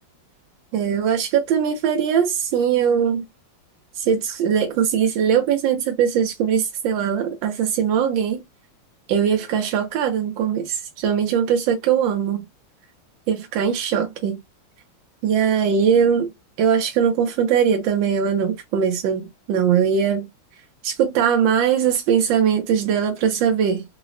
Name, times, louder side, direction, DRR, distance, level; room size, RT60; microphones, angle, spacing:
voice 1, 0.7-3.2 4.0-8.4 9.1-12.4 13.3-14.4 15.2-16.3 16.6-20.3 20.8-23.8, right 7 dB, 80° right, 1.4 m, -20 dB
3.8 x 2.0 x 2.5 m
omnidirectional pair, 2.1 m